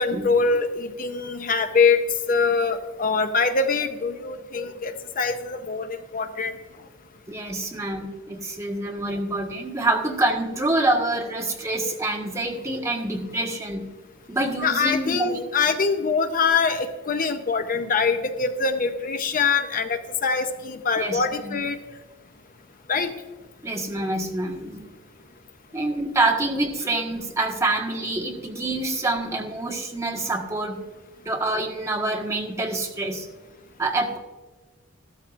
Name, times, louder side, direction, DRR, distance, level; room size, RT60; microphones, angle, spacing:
voice 1, 0.0-6.5 14.6-21.8 22.9-23.2, left 4 dB, 45° left, 8 dB, 0.7 m, -24 dB
voice 2, 7.3-13.9 14.3-15.4 21.0-21.6 23.6-24.9 25.7-30.8 31.2-33.3 33.8-34.2, right 2 dB, 15° right, -1 dB, 1.5 m, -26 dB
14.5 x 13.0 x 2.5 m, 1.3 s
head